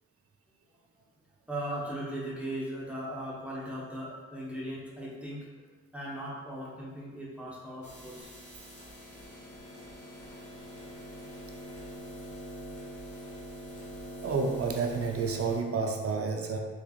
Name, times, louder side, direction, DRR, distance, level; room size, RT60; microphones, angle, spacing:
voice 1, 1.5-8.3, right 1 dB, 5° right, -6 dB, 1.0 m, -38 dB
sound 1, 7.8-15.6, equal, 80° left, 1.0 m, -44 dB
voice 2, 14.2-16.6, right 4 dB, 50° right, 2 dB, 0.6 m, -30 dB
3.5 x 3.4 x 2.4 m, 1.4 s
cardioid pair, 55°, 30 cm